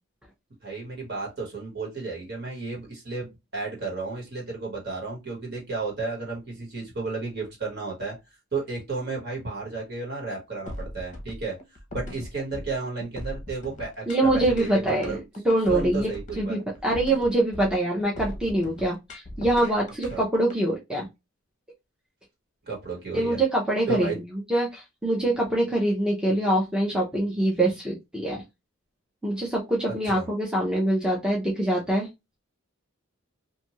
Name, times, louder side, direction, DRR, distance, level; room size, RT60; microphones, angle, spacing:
voice 1, 0.6-8.2 8.5-11.6 11.9-15.2 15.7-16.6 20.1-20.2 22.7-23.4 23.9-24.2 30.0-30.3, right 3 dB, 50° right, 1.4 m, -33 dB
sound 1, 10.7-20.6, left 1 dB, 35° left, 0.7 m, -38 dB
voice 2, 14.1-16.1 16.4-21.1 23.1-24.1 24.5-28.4 29.2-32.1, right 1 dB, 5° right, 0.5 m, -24 dB
2.6 x 2.4 x 2.9 m
head